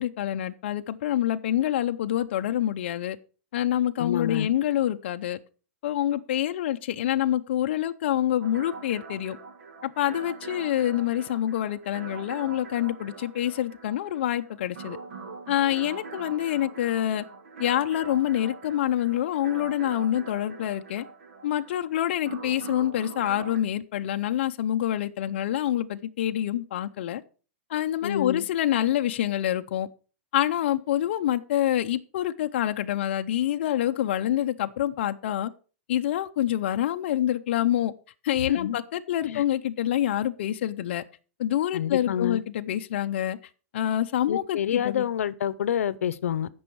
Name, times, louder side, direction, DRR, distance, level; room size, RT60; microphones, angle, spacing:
voice 1, 0.0-3.2 3.5-5.4 5.8-9.4 9.8-15.0 15.5-17.2 17.6-21.1 21.4-27.2 27.7-29.9 30.3-35.5 35.9-37.9 38.2-41.0 41.4-43.4 43.7-45.1, left 12 dB, 50° left, 0.6 m, -26 dB
voice 2, 4.0-4.5 28.0-28.4 38.5-38.8 39.3-39.4 41.7-42.4 44.3-46.5, left 9 dB, 90° left, 0.7 m, -28 dB
sound 1, 8.4-23.6, right 4 dB, 60° right, 1.9 m, -42 dB
15.5 x 6.2 x 4.7 m
supercardioid pair, 175°, 7 cm